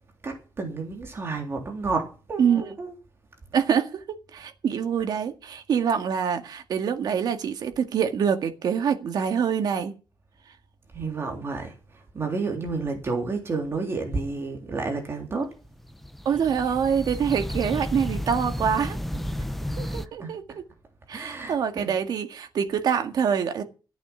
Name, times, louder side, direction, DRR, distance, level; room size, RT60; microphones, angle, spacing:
voice 1, 0.2-3.0 10.9-11.7 12.1-15.5 19.7-19.8 20.2-20.3 21.1-21.9, right 4 dB, 35° right, 3.5 m, -30 dB
voice 2, 2.4-2.7 3.5-9.9 16.3-19.0 19.8-20.4 21.1-23.6, right 7 dB, 65° right, 2.0 m, -25 dB
sound 1, 15.6-20.1, left 1 dB, ahead, 0.9 m, -32 dB
15.0 x 8.7 x 7.3 m
wide cardioid pair, 150°, 8 cm